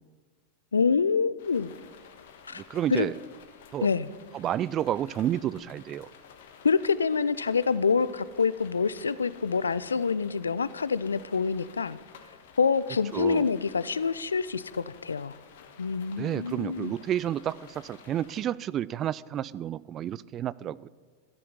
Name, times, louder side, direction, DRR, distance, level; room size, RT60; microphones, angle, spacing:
voice 1, 0.7-1.7 2.5-2.6 2.9-3.1 3.8-4.1 6.6-12.0 12.6-15.3 15.8-16.9, left 5 dB, 75° left, 18 dB, 0.5 m, -26 dB
sound 1, 1.4-18.4, left 7 dB, 55° left, 1.4 m, -52 dB
voice 2, 2.5-3.1 3.7-3.9 4.3-6.1 13.1-13.5 16.1-20.9, right 11 dB, 30° right, 20 dB, 0.3 m, -30 dB
13.0 x 7.7 x 9.7 m, 1.5 s
figure-of-eight pair, 90°, 0 cm